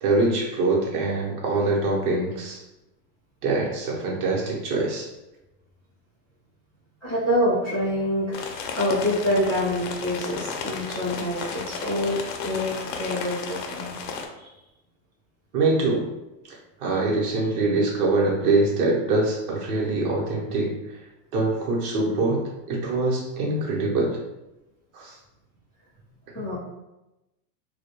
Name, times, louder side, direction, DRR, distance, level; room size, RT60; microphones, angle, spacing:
voice 1, 0.0-2.6 3.4-5.1 15.5-16.1 16.5-20.7 21.3-24.2 24.9-25.1 26.4-26.5, right 2 dB, 60° right, -2 dB, 0.9 m, -24 dB
voice 2, 7.0-8.3 8.7-14.0 14.4-14.5 26.3-26.6, left 1 dB, ahead, -17 dB, 0.4 m, -26 dB
sound 1, 8.3-14.3, left 5 dB, 85° left, 0.6 m, -34 dB
2.2 x 2.1 x 2.9 m, 0.95 s
supercardioid pair, 175°, 49 cm